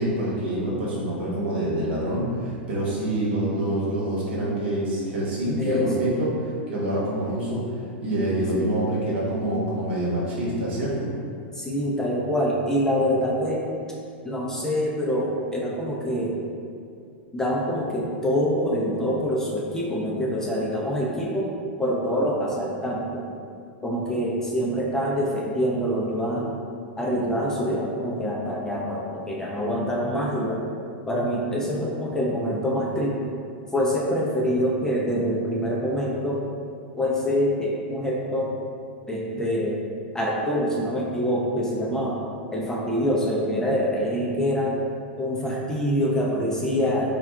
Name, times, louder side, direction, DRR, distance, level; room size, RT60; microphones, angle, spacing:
voice 1, 0.0-11.1, right 1 dB, 70° right, -6 dB, 1.0 m, -26 dB
voice 2, 5.6-6.1 8.5-8.8 11.5-13.6 14.2-16.4 17.3-21.5 21.8-23.3 23.8-26.6 27.0-30.6 31.1-33.3 33.7-36.4 37.0-38.5 39.1-39.8 40.1-42.2 42.5-44.8 45.2-47.1, equal, 10° left, -4 dB, 0.4 m, -25 dB
3.4 x 2.3 x 2.3 m, 2.3 s
hypercardioid pair, 110°, 6 cm